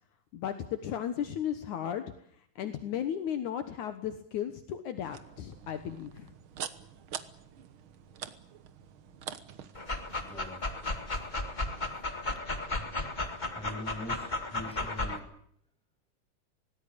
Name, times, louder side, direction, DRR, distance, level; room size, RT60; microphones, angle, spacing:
voice 1, 0.3-2.0 2.6-6.3 12.9-13.0, left 9 dB, 70° left, 8 dB, 2.6 m, -35 dB
sound 1, 5.0-10.4, right 9 dB, 60° right, 1.4 m, -45 dB
Dog, 9.7-15.2, left 2 dB, 20° left, 1.3 m, -34 dB
voice 2, 10.3-10.6 13.2-15.3, left 1 dB, ahead, 4 dB, 7.5 m, -43 dB
25.5 x 19.0 x 8.8 m, 0.67 s
omnidirectional pair, 3.8 m